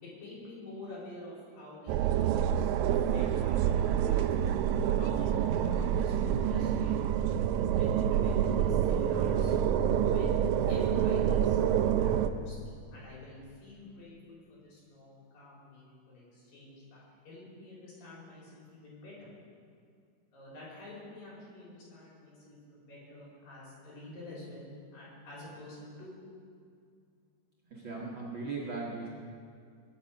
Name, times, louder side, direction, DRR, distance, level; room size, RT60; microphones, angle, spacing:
voice 1, 0.0-4.3 4.8-6.9 7.8-9.5 10.0-10.4 10.7-19.3 20.3-26.1, left 2 dB, 85° left, -7 dB, 6.1 m, -48 dB
sound 1, 1.9-12.3, right 9 dB, 80° right, 1.7 m, -27 dB
voice 2, 27.7-29.1, right 3 dB, 45° right, -5 dB, 1.9 m, -38 dB
22.0 x 8.6 x 5.4 m, 2.2 s
omnidirectional pair, 3.9 m